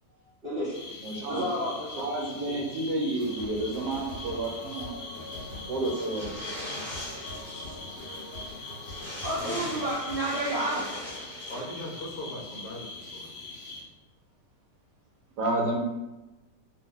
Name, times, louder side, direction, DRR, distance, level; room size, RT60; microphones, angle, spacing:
voice 1, 0.4-0.7 1.3-2.0 2.3-2.6 9.2-11.0, right 1 dB, 55° right, -10 dB, 0.6 m, -31 dB
sound 1, 0.7-13.8, left 3 dB, 90° left, 0.5 m, -43 dB
voice 2, 1.0-1.4 2.0-4.9 5.7-6.6 15.4-15.8, right 2 dB, 75° right, 0 dB, 1.1 m, -30 dB
sound 2, 3.2-10.1, left 1 dB, 40° left, 0.9 m, -43 dB
sound 3, 5.9-7.9 8.1-8.2 8.5-8.6 8.8-11.6, left 1 dB, 10° left, 0.8 m, -40 dB
voice 3, 9.4-9.8 11.5-13.3, left 1 dB, 70° left, -2 dB, 0.9 m, -39 dB
2.8 x 2.1 x 3.5 m, 1.1 s
omnidirectional pair, 1.8 m